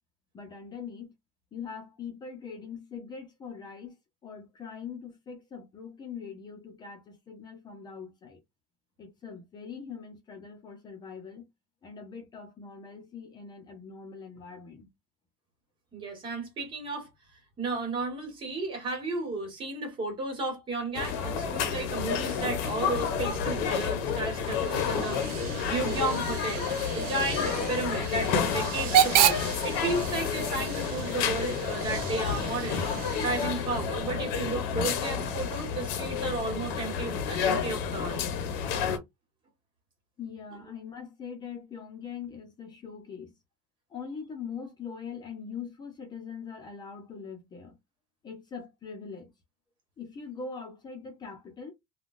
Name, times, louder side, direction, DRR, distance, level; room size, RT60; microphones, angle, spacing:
voice 1, 0.3-1.1 1.5-4.0 4.2-8.4 9.0-11.4 11.8-14.9 40.2-43.4 43.9-47.8 48.2-49.3 50.0-51.7, left 6 dB, 25° left, 0.8 m, -42 dB
voice 2, 15.9-17.1 17.6-25.4 25.7-26.7 26.9-32.9 33.2-38.3, right 3 dB, 35° right, 1.7 m, -33 dB
sound 1, 20.9-39.0, left 7 dB, 70° left, 0.8 m, -30 dB
Hiss / Train / Alarm, 24.2-33.9, right 10 dB, 65° right, 0.7 m, -31 dB
3.5 x 2.4 x 2.5 m
cardioid pair, 140°, 16 cm